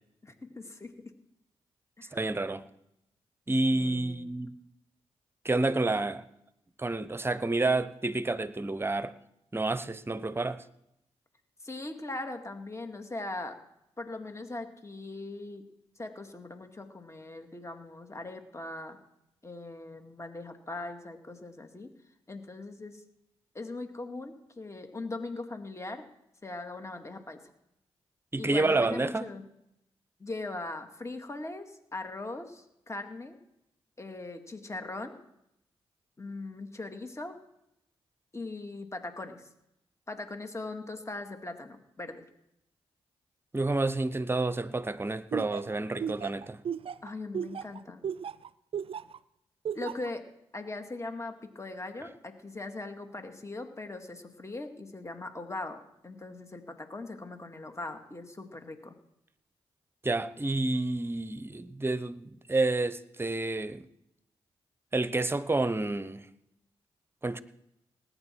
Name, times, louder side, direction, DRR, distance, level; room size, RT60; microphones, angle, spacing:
voice 1, 0.2-0.9 2.0-2.2 3.7-4.3 11.6-13.6 14.0-15.6 16.0-19.0 19.4-21.9 22.3-23.0 23.5-26.0 26.4-27.4 28.4-29.4 30.2-33.4 34.0-35.2 36.2-37.4 38.3-39.4 40.1-42.3 47.0-48.0 49.7-50.2 50.5-58.9, left 2 dB, 25° left, 5 dB, 2.1 m, -40 dB
voice 2, 2.1-2.6 3.5-4.5 5.4-6.2 6.8-9.1 9.5-10.6 28.3-29.3 43.5-46.6 60.0-63.9 64.9-66.3 67.2-67.4, right 2 dB, 20° right, 14 dB, 0.9 m, -29 dB
Laughter, 45.3-49.2 49.6-50.1, right 8 dB, 55° right, 0.4 m, -35 dB
19.0 x 9.1 x 4.6 m, 0.80 s
supercardioid pair, 50°, 11 cm